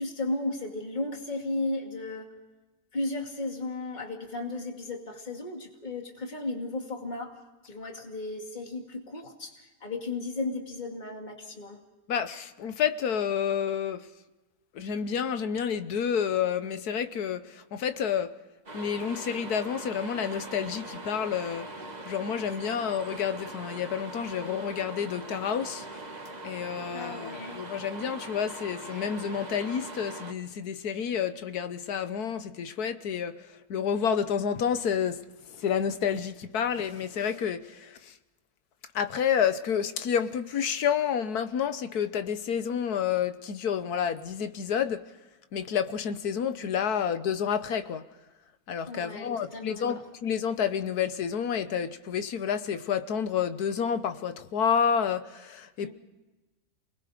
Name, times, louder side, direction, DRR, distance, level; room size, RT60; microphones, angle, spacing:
voice 1, 0.0-2.3 2.9-7.3 7.6-11.8 22.8-22.9 26.9-27.6 48.9-50.0 55.8-55.9, left 2 dB, 30° left, 2.5 m, -35 dB
voice 2, 12.1-14.1 14.7-18.3 18.7-21.7 22.0-25.9 26.4-35.2 35.5-38.2 38.9-45.0 45.5-48.0 48.7-55.9, left 7 dB, 80° left, 1.5 m, -29 dB
sound 1, 18.7-30.3, right 2 dB, 30° right, 1.6 m, -41 dB
28.5 x 20.5 x 5.0 m
omnidirectional pair, 1.6 m